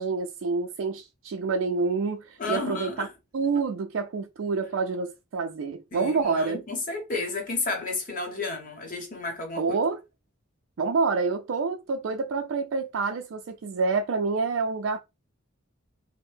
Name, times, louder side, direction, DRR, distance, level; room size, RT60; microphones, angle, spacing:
voice 1, 0.0-3.1 3.3-6.6 9.6-10.0 10.8-15.0, right 4 dB, 65° right, 0.4 m, -27 dB
voice 2, 2.4-3.1 3.5-3.6 5.9-9.8, left 3 dB, 40° left, 0.9 m, -32 dB
2.7 x 2.0 x 3.3 m
head